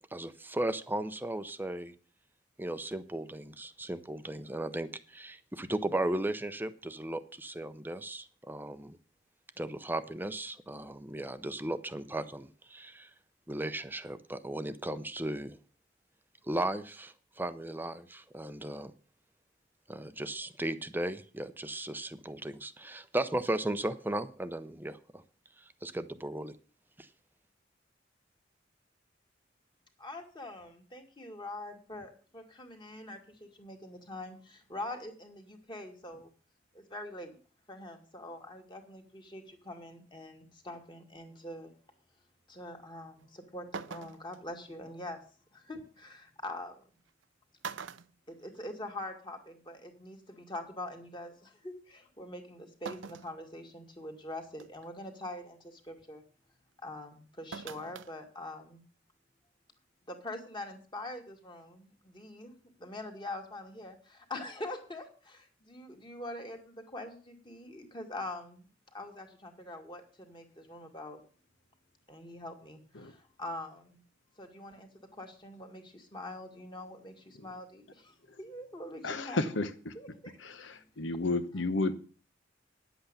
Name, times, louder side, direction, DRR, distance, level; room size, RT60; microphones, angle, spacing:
voice 1, 0.1-1.9 2.6-9.0 9.6-13.1 13.5-15.6 16.4-18.9 19.9-25.2 25.6-26.5 27.0-27.1, right 1 dB, 10° right, 0.6 m, -36 dB
voice 2, 30.0-36.3 36.7-37.4 37.7-41.7 42.5-45.2 45.5-46.8 48.3-56.2 56.8-58.8 60.1-62.5 62.8-71.2 72.1-74.0 74.4-79.6 79.9-80.3 80.7-80.8, left 1 dB, 25° left, 2.0 m, -44 dB
sound 1, 43.2-43.3 43.7-44.4 46.0-46.1 47.1-47.2 47.6-49.0 49.3-49.4 50.7-50.8 52.9-53.4 53.9-54.0 54.6-54.9 57.5-58.1 58.5-58.6, right 5 dB, 85° right, 0.6 m, -43 dB
voice 3, 79.0-79.9 80.4-82.0, left 2 dB, 80° left, 1.0 m, -32 dB
10.0 x 8.1 x 6.8 m
head